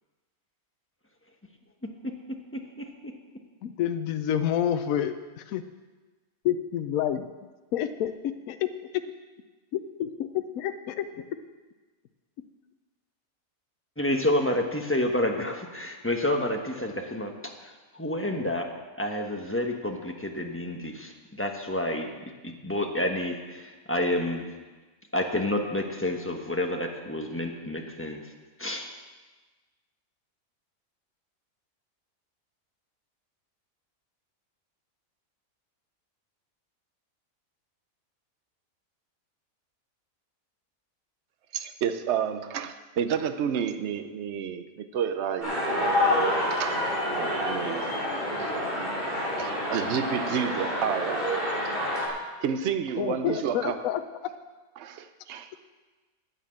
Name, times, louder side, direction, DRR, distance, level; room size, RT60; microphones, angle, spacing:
voice 1, 2.5-3.1 14.0-17.3 17.6-18.7 19.0-22.1 22.4-24.5 25.1-28.3 28.6-28.9, left 1 dB, 10° left, 2 dB, 1.0 m, -29 dB
voice 2, 3.6-5.6 6.4-7.3 7.7-8.7 9.7-11.1 53.0-54.0, left 10 dB, 75° left, 9 dB, 1.0 m, -28 dB
voice 3, 41.5-48.6 49.4-51.3 51.6-51.7 52.4-53.8 54.8-55.5, right 8 dB, 55° right, 10 dB, 0.9 m, -31 dB
sound 1, 45.4-52.1, left 1 dB, 40° right, 3.6 m, -28 dB
9.5 x 9.3 x 7.6 m, 1.3 s
omnidirectional pair, 1.5 m